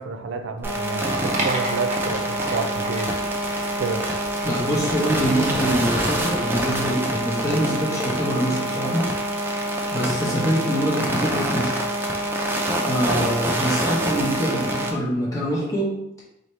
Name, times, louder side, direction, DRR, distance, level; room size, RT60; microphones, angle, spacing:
voice 1, 0.0-3.1 3.8-4.1, right 4 dB, 80° right, 7 dB, 0.4 m, -29 dB
sound 1, 0.6-14.9, right 1 dB, 10° right, 0.4 m, -26 dB
sound 2, 0.6-7.8, right 2 dB, 40° right, 0.7 m, -35 dB
voice 2, 4.4-9.1 9.9-11.8 12.8-15.9, equal, 15° left, -6 dB, 1.0 m, -24 dB
4.1 x 2.9 x 3.2 m, 0.81 s
head